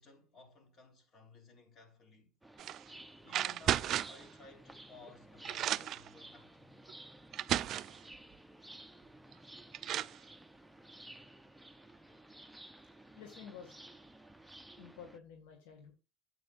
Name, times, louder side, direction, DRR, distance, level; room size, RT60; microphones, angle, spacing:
voice 1, 0.0-2.4 3.2-6.7, left 3 dB, 45° left, 3.7 m, -58 dB
sound 1, 2.4-15.2, right 1 dB, 5° right, 0.7 m, -55 dB
sound 2, 2.6-2.8 3.3-4.2 5.1-5.2 5.4-6.1 6.9-7.0 7.3-8.0 9.3-9.4 9.7-10.2, right 11 dB, 55° right, 0.4 m, -34 dB
voice 2, 13.2-13.7 14.8-15.9, left 7 dB, 80° left, 1.8 m, -51 dB
12.5 x 8.3 x 2.5 m
supercardioid pair, 90°, 0 cm